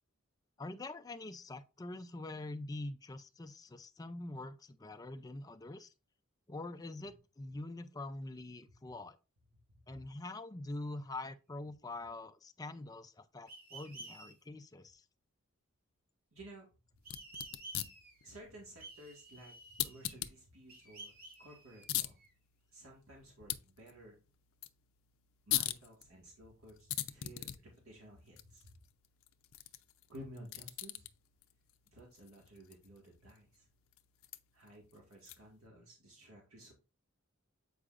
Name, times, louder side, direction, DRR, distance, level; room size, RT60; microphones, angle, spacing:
voice 1, 0.6-5.9 6.5-9.2 9.9-15.0, left 2 dB, 20° left, 0.4 m, -45 dB
voice 2, 9.7-10.0 16.3-16.7 17.0-17.1 18.2-19.6 19.8-21.1 21.4-22.2 22.7-24.2 25.5-28.7 30.1-31.1 31.8-33.7 34.5-36.7, right 1 dB, 85° right, 1.8 m, -54 dB
sound 1, 13.5-14.3 17.0-18.3 18.8-20.3 20.7-22.3, right 2 dB, 45° right, 1.7 m, -52 dB
sound 2, 17.0-35.7, left 13 dB, 75° left, 0.5 m, -44 dB
8.1 x 4.9 x 2.5 m
head